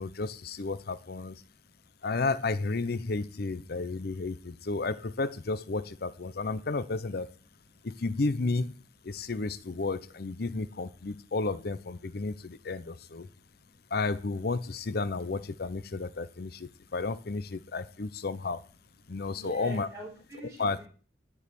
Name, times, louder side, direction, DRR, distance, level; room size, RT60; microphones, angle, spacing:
voice 1, 0.0-1.4 2.0-7.3 7.8-8.7 9.0-13.3 13.9-18.6 19.1-19.9 20.6-20.8, left 3 dB, 60° left, 14 dB, 0.6 m, -32 dB
voice 2, 4.2-4.7 7.3-7.4 7.6-7.8 9.0-9.3 11.0-11.3 12.6-13.8 16.1-16.5 16.9-17.0 17.8-17.9 19.3-20.9, equal, 20° right, -3 dB, 3.6 m, -48 dB
12.5 x 4.8 x 8.4 m, 0.40 s
head